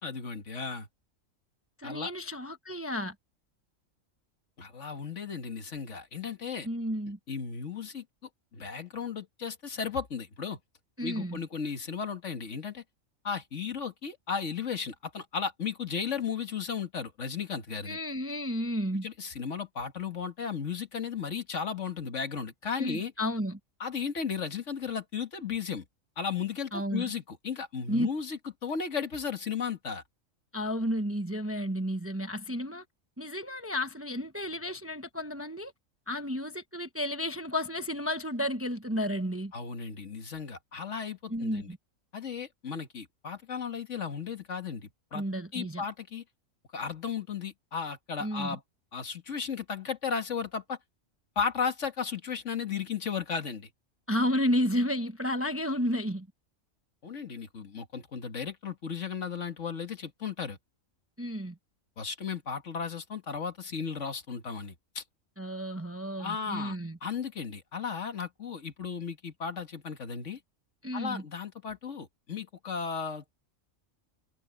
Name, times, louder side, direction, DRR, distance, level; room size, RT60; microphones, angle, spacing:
voice 1, 0.0-0.9 1.8-2.1 4.6-6.7 7.3-8.0 8.5-10.6 11.0-12.8 13.2-18.0 19.0-23.1 23.8-25.8 26.2-30.0 39.5-41.7 42.1-45.2 45.5-46.2 46.7-48.6 48.9-50.8 51.4-53.7 57.0-60.6 62.0-65.0 66.2-66.8 67.0-70.4 70.9-73.2, left 6 dB, 65° left, 2.0 m, -35 dB
voice 2, 1.8-3.1 6.6-7.2 11.0-11.4 17.8-19.0 22.8-23.6 26.7-27.1 27.9-28.1 30.5-32.8 33.2-35.7 36.1-39.5 41.3-41.8 45.1-45.8 48.2-48.6 54.1-56.3 61.2-61.6 65.4-67.0 70.8-71.2, equal, 10° right, 0.9 m, -32 dB
omnidirectional pair, 1.4 m